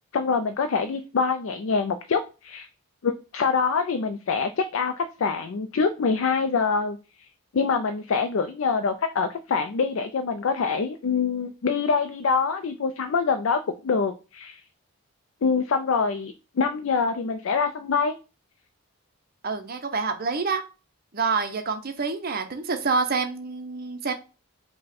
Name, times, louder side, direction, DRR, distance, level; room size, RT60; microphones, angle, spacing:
voice 1, 0.1-2.7 3.0-7.0 7.5-14.6 15.4-18.2, left 5 dB, 65° left, 8 dB, 0.4 m, -25 dB
voice 2, 19.4-20.6 21.1-24.1, right 4 dB, 45° right, 7 dB, 0.6 m, -27 dB
5.4 x 2.2 x 4.1 m, 0.32 s
head